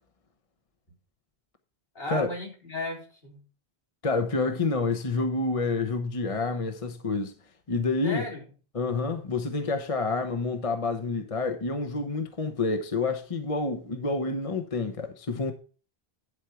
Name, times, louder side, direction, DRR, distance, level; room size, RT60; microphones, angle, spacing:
voice 1, 1.9-3.4 8.0-8.4, left 2 dB, 65° left, 4.3 m, -35 dB
voice 2, 4.0-7.3 7.7-8.2 8.7-15.5, left 3 dB, 35° left, 0.9 m, -28 dB
11.0 x 4.9 x 5.8 m
omnidirectional pair, 1.1 m